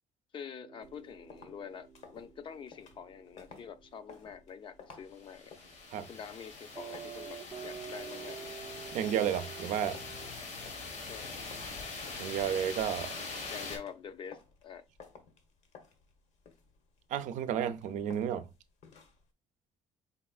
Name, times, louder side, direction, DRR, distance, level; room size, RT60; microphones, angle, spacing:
voice 1, 0.3-5.5 6.1-8.5 11.1-11.4 13.5-14.9, left 7 dB, 40° left, 0.5 m, -46 dB
sound 1, 0.6-10.3, right 7 dB, 30° right, 0.4 m, -49 dB
sound 2, 0.8-19.3, left 5 dB, 65° left, 1.1 m, -57 dB
sound 3, 5.2-13.8, left 3 dB, 85° left, 2.1 m, -43 dB
voice 2, 8.9-10.0 12.2-13.1 17.1-18.5, right 9 dB, 85° right, 0.5 m, -32 dB
4.2 x 4.1 x 2.3 m
cardioid pair, 145°, 12 cm